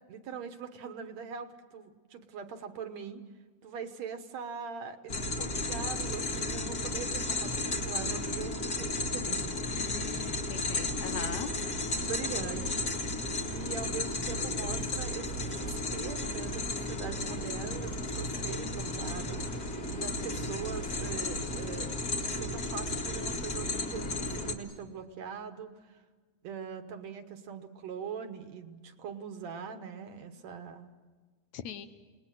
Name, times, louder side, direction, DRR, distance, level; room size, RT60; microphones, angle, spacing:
voice 1, 0.1-3.2 3.6-9.4 10.0-10.2 12.0-12.9 13.5-19.7 20.0-26.0 26.4-30.9, right 6 dB, 65° right, 8 dB, 2.3 m, -42 dB
sound 1, 5.1-24.5, left 2 dB, 35° left, 2.2 m, -34 dB
voice 2, 9.7-11.5 31.5-31.9, left 9 dB, 70° left, 10 dB, 2.1 m, -40 dB
30.0 x 20.0 x 7.6 m, 1.4 s
omnidirectional pair, 3.6 m